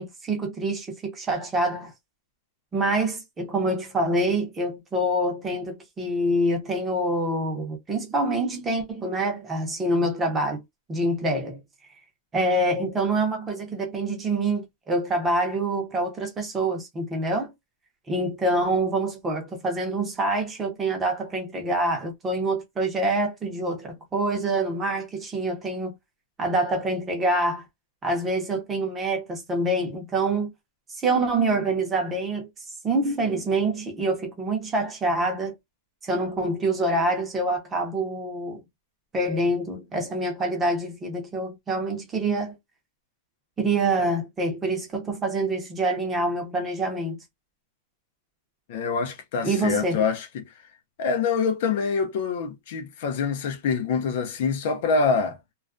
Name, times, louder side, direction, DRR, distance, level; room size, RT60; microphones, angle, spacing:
voice 1, 0.0-1.9 2.7-10.6 10.9-11.6 12.3-17.5 18.1-26.0 26.4-27.7 28.0-30.5 31.0-32.5 32.8-35.5 36.0-38.6 39.1-42.6 43.6-47.2 49.4-50.0, right 2 dB, 15° right, 0.7 m, -26 dB
voice 2, 48.7-50.5 51.0-55.4, left 5 dB, 55° left, 0.5 m, -25 dB
2.3 x 2.2 x 2.4 m
supercardioid pair, 160°, 0 cm